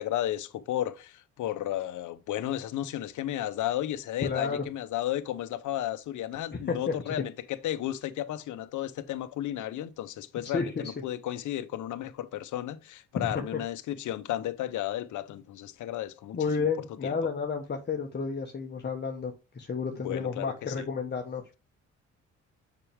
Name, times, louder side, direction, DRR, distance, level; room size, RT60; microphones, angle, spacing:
voice 1, 0.0-7.3 7.6-16.7 17.0-17.1 20.0-20.8, left 13 dB, 75° left, 0.9 m, -33 dB
voice 2, 4.2-4.6 6.5-6.9 10.5-10.9 13.3-13.4 16.3-21.6, left 5 dB, 35° left, 1.5 m, -31 dB
6.8 x 5.9 x 3.6 m
cardioid pair, 90°, 30 cm